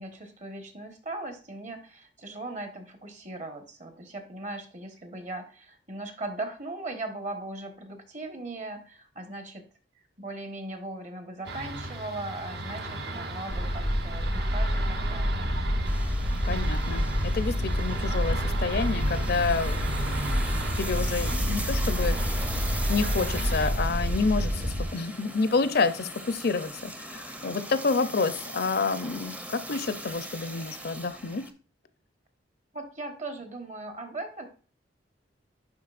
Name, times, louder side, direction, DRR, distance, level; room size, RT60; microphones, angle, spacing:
voice 1, 0.0-9.6 10.2-15.5 32.7-34.5, right 2 dB, 40° right, 6 dB, 1.3 m, -39 dB
sound 1, 11.4-23.7, right 2 dB, 65° right, 1.0 m, -36 dB
sound 2, 13.5-24.9, equal, 85° right, 2.8 m, -28 dB
sound 3, 15.8-31.5, right 1 dB, 10° right, 0.6 m, -40 dB
voice 2, 16.4-22.2 22.9-31.4, left 4 dB, 60° left, 12 dB, 0.6 m, -29 dB
10.5 x 4.0 x 2.5 m, 0.40 s
head